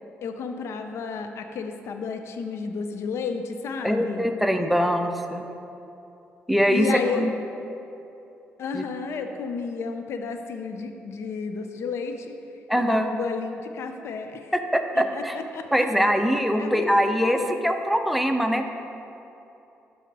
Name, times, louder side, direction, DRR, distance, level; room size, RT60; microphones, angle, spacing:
voice 1, 0.2-4.3 6.7-7.3 8.6-12.4 12.8-14.5 14.9-15.9 16.6-16.9 17.3-17.6, left 5 dB, 70° left, 6 dB, 0.4 m, -32 dB
voice 2, 3.8-5.5 6.5-7.3 8.7-8.8 12.7-13.1 14.5-15.4 15.7-18.7, equal, ahead, 6 dB, 0.5 m, -23 dB
5.8 x 4.1 x 6.0 m, 2.9 s
cardioid pair, 85°, 5 cm